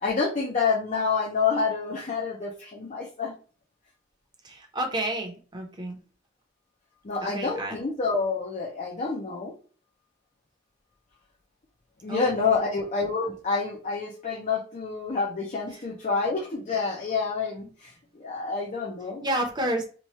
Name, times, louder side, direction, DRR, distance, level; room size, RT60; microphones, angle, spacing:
voice 1, 0.0-3.3 7.0-9.5 12.0-19.2, left 4 dB, 35° left, -1 dB, 0.6 m, -28 dB
voice 2, 4.4-6.0 7.2-7.8 12.1-12.2 12.5-12.8 15.7-15.9 19.2-19.9, right 1 dB, 20° right, 3 dB, 0.8 m, -30 dB
3.0 x 2.3 x 4.1 m, 0.39 s
head